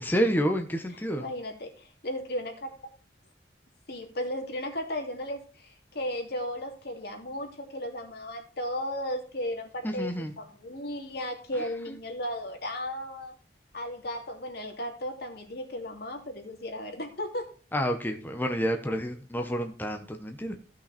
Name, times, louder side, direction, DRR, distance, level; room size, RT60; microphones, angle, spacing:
voice 1, 0.0-1.3 9.8-10.3 11.5-12.0 17.7-20.6, equal, 10° left, 4 dB, 1.1 m, -29 dB
voice 2, 1.2-2.7 3.9-13.3 13.7-17.5, left 1 dB, 65° left, 3 dB, 2.9 m, -35 dB
16.0 x 6.1 x 4.3 m, 0.38 s
head